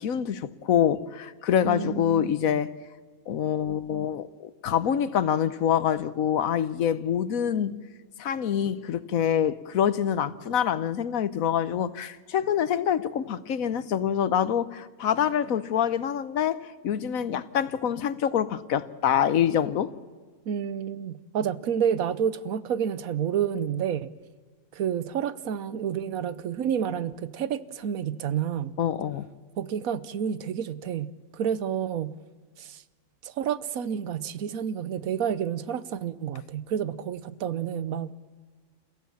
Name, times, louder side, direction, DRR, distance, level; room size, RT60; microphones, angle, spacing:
voice 1, 0.0-2.7 3.3-4.3 4.6-7.7 8.2-16.6 16.8-19.9 28.8-29.2, left 9 dB, 80° left, 1.3 m, -25 dB
voice 2, 1.6-2.6 20.5-24.1 24.7-28.8 29.6-32.2 32.6-32.8 33.2-38.1, right 8 dB, 85° right, 1.3 m, -29 dB
29.5 x 15.0 x 7.2 m
omnidirectional pair, 1.4 m